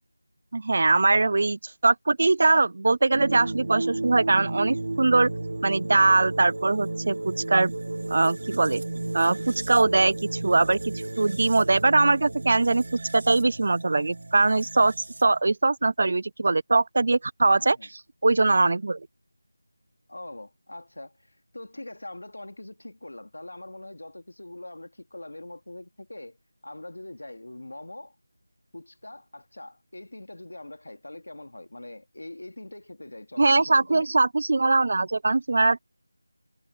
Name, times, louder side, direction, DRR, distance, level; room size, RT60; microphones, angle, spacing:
voice 1, 0.5-5.3 5.6-7.7 8.1-8.8 9.1-12.8 13.1-14.9 15.2-17.8 18.2-19.1 33.4-35.8, right 3 dB, 40° right, 0.4 m, -22 dB
sound 1, 3.1-15.4, right 2 dB, 55° right, 2.2 m, -33 dB
voice 2, 17.5-17.9 20.1-26.4 26.6-28.1 28.7-34.1, left 1 dB, 85° left, 2.7 m, -42 dB
figure-of-eight pair, 175°, 0 cm